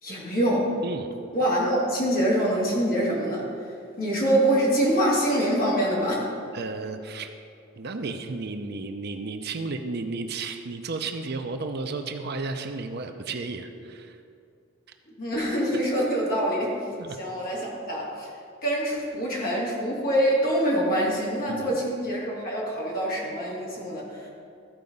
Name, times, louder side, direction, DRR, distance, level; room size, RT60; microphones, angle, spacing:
voice 1, 0.0-0.7 1.3-3.7 4.0-6.3 15.2-16.7 17.2-18.3 18.6-24.3, equal, 45° left, -4 dB, 2.4 m, -25 dB
voice 2, 6.5-7.3 7.8-14.2 17.0-17.2 21.5-21.8, right 3 dB, 50° right, 6 dB, 0.6 m, -33 dB
13.5 x 4.8 x 5.4 m, 2.5 s
head